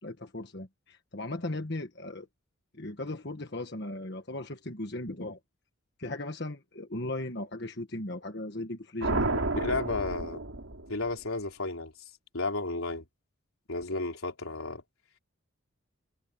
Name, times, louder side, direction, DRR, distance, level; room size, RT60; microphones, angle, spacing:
voice 1, 0.0-2.3 2.8-5.4 6.0-9.4, left 2 dB, 55° left, 1.5 m, -37 dB
sound 1, 9.0-11.2, right 2 dB, 80° right, 3.5 m, -31 dB
voice 2, 9.5-10.4 10.9-11.9 12.3-13.1 13.7-14.8, left 2 dB, 90° left, 4.3 m, -32 dB
head